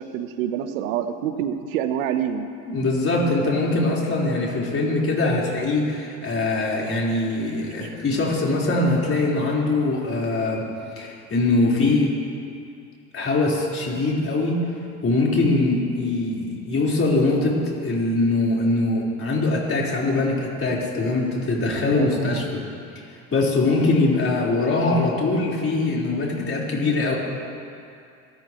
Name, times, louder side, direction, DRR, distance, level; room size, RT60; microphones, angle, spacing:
voice 1, 0.0-2.5 7.7-7.9 22.0-22.4, right 9 dB, 85° right, 8 dB, 1.1 m, -27 dB
voice 2, 2.7-10.7 11.0-12.1 13.1-14.6 15.0-22.6 23.3-27.1, left 2 dB, 35° left, -4 dB, 4.6 m, -22 dB
24.5 x 13.5 x 3.2 m, 2.5 s
supercardioid pair, 85°, 39 cm